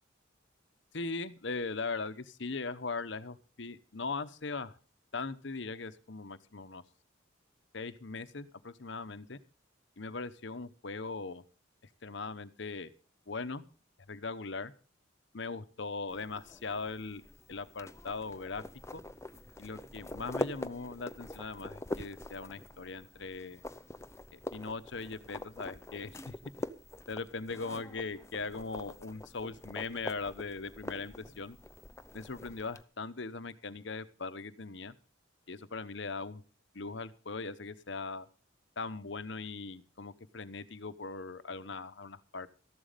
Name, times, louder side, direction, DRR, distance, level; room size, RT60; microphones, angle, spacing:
voice 1, 0.9-4.7 5.1-6.8 7.7-9.4 10.0-11.4 12.0-12.9 13.3-13.6 14.1-14.7 15.3-17.2 17.5-18.6 18.9-19.0 19.6-23.6 24.3-26.4 27.1-31.6 32.1-34.9 35.5-36.4 36.7-38.3 38.8-42.5, left 4 dB, 60° left, 13 dB, 1.0 m, -40 dB
sound 1, 16.1-32.8, left 1 dB, 15° left, 0.6 m, -44 dB
14.0 x 11.5 x 5.1 m, 0.36 s
head